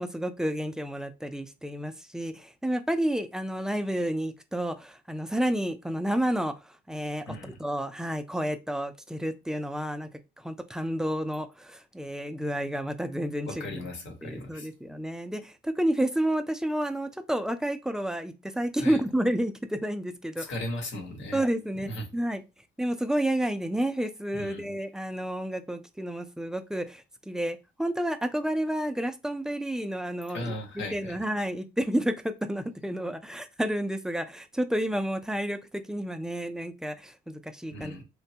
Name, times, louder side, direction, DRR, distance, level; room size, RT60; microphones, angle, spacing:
voice 1, 0.0-10.1 10.4-13.8 14.2-20.4 21.3-22.4 22.8-30.5 30.9-38.0, right 1 dB, 5° right, 0.3 m, -30 dB
voice 2, 7.3-7.6 13.5-14.7 18.8-19.0 20.4-21.4 21.7-22.1 24.3-24.7 30.3-31.2 37.7-38.0, left 1 dB, 70° left, 1.1 m, -37 dB
3.1 x 2.2 x 2.7 m
cardioid pair, 90°, 20 cm